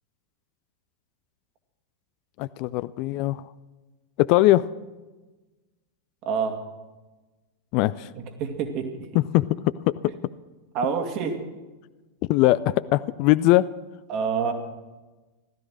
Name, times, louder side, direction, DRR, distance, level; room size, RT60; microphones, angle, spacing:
voice 1, 2.4-3.4 4.2-4.7 7.7-8.1 9.1-9.4 9.9-10.0 12.3-13.7, left 17 dB, 45° left, 17 dB, 0.4 m, -20 dB
voice 2, 6.2-6.6 8.1-9.1 10.7-11.4 14.1-14.5, right 6 dB, 40° right, 5 dB, 2.1 m, -27 dB
16.0 x 13.0 x 6.2 m, 1.2 s
figure-of-eight pair, 90°, 0 cm